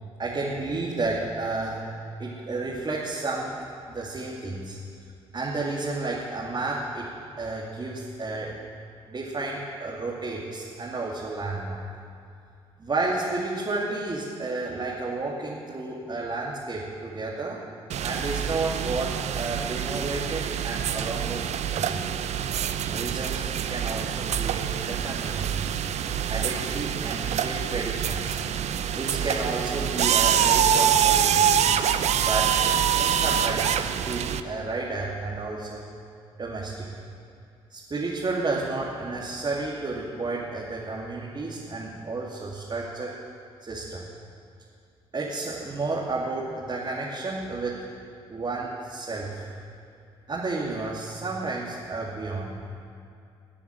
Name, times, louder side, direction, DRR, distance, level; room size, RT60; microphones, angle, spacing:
voice 1, 0.2-1.9 2.2-3.6 3.9-4.8 5.3-7.1 7.4-8.5 9.1-11.8 12.8-17.6 18.0-21.4 21.7-22.1 22.9-25.8 26.3-28.4 28.9-31.5 32.2-35.8 36.4-36.9 37.7-43.1 43.6-44.1 45.1-47.8 48.3-49.5 50.3-52.6, right 3 dB, 35° right, -5 dB, 2.7 m, -31 dB
sound 1, 17.9-34.4, right 9 dB, 55° right, 0.8 m, -25 dB
21.5 x 7.9 x 7.8 m, 2.5 s
hypercardioid pair, 45°, 14 cm